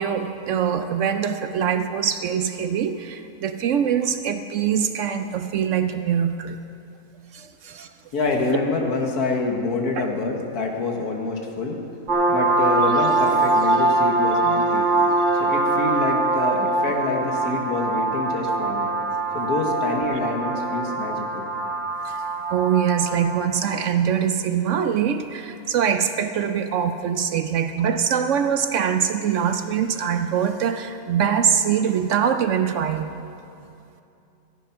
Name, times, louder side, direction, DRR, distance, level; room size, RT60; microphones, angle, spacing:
voice 1, 0.0-6.6 7.3-7.9 10.0-10.1 20.1-20.2 22.0-22.2 22.5-33.2, right 8 dB, 70° right, 8 dB, 0.8 m, -23 dB
voice 2, 8.1-11.8 12.3-14.9 15.3-18.9 19.3-21.5, left 3 dB, 85° left, 1 dB, 1.9 m, -26 dB
sound 1, 12.1-23.4, right 2 dB, 35° right, 1.0 m, -22 dB
14.0 x 9.3 x 5.8 m, 2.7 s
omnidirectional pair, 1.6 m